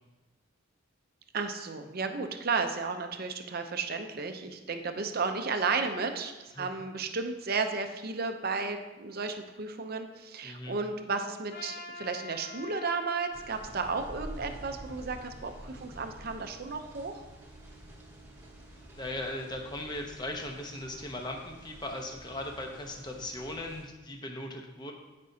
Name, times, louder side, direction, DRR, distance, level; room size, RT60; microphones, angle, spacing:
voice 1, 1.3-17.1, right 4 dB, 50° right, 6 dB, 0.6 m, -33 dB
voice 2, 10.4-10.8 15.7-16.1 19.0-24.9, left 1 dB, 20° left, 2 dB, 0.9 m, -38 dB
Trumpet, 11.5-15.8, left 3 dB, 45° left, 0.9 m, -47 dB
sound 1, 13.3-23.8, right 1 dB, 10° right, 1.2 m, -48 dB
15.0 x 5.3 x 2.8 m, 1.1 s
head